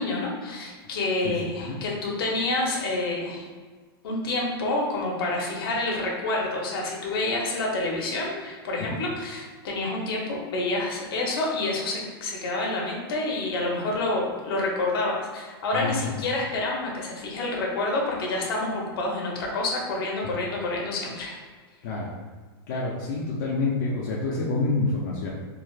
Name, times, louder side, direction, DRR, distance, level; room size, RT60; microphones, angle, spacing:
voice 1, 0.0-3.5 4.0-21.4, left 2 dB, 65° left, -2 dB, 0.8 m, -28 dB
voice 2, 21.8-22.1 22.7-25.3, left 3 dB, 45° left, -4 dB, 0.5 m, -27 dB
3.3 x 2.4 x 2.3 m, 1.4 s
supercardioid pair, 155°, 13 cm